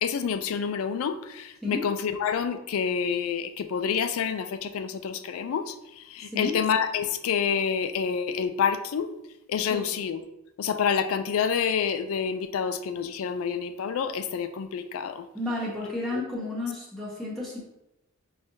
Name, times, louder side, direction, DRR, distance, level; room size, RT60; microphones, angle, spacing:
voice 1, 0.0-9.1 9.5-10.2 10.6-15.3 16.1-16.2, left 7 dB, 75° left, 10 dB, 0.3 m, -28 dB
voice 2, 6.2-6.6 9.7-9.9 15.3-17.6, left 2 dB, ahead, -6 dB, 0.7 m, -32 dB
4.8 x 2.7 x 2.7 m, 0.88 s
head